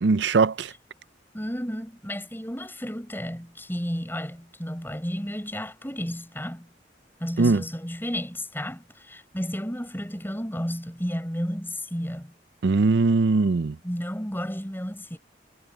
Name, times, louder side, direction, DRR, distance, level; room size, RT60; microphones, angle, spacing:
voice 1, 0.0-0.7 7.4-7.6 12.6-13.8, right 3 dB, 70° right, 0.5 m, -20 dB
voice 2, 1.3-6.7 7.2-12.3 13.8-15.2, equal, 10° left, 6.3 m, -32 dB
head